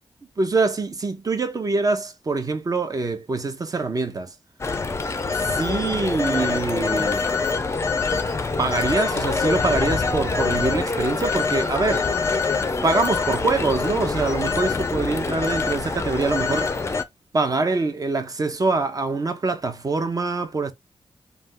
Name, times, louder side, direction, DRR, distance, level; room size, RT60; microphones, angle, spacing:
voice 1, 0.4-4.3 5.3-7.3 8.6-12.1 12.8-16.8 17.3-20.7, right 3 dB, 35° right, 0.6 m, -24 dB
Telephone, 4.6-17.0, left 4 dB, 25° left, 0.4 m, -25 dB
2.4 x 2.3 x 3.6 m
cardioid pair, 75°, 11 cm